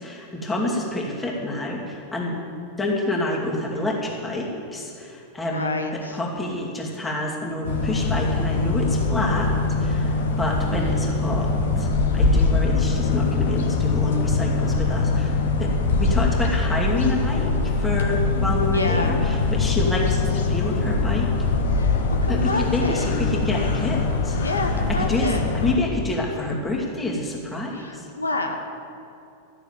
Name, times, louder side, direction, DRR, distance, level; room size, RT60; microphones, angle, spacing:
voice 1, 0.0-2.4 2.8-9.5 9.8-21.3 22.3-24.4 24.7-28.1, left 1 dB, 10° left, -2 dB, 2.4 m, -28 dB
voice 2, 5.5-6.2 18.7-19.2 21.7-22.0 22.2-23.1 24.4-25.5 27.7-28.6, left 2 dB, 80° left, 4 dB, 0.9 m, -28 dB
sound 1, 7.6-25.7, left 3 dB, 60° left, 1.3 m, -22 dB
12.5 x 7.0 x 9.3 m, 2.6 s
figure-of-eight pair, 90°, 0 cm